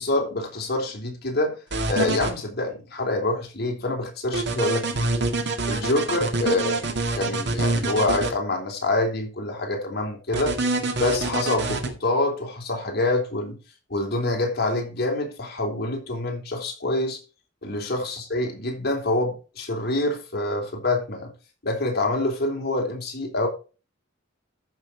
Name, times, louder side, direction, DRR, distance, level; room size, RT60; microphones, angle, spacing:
voice 1, 0.0-1.6 1.9-5.2 5.6-10.6 11.0-13.6 13.9-17.2 17.6-21.3 21.6-23.5, left 2 dB, 50° left, 3.6 m, -26 dB
sound 1, 1.7-2.3 4.3-8.3 10.3-11.9, right 3 dB, 55° right, 2.1 m, -25 dB
13.5 x 6.2 x 4.2 m
head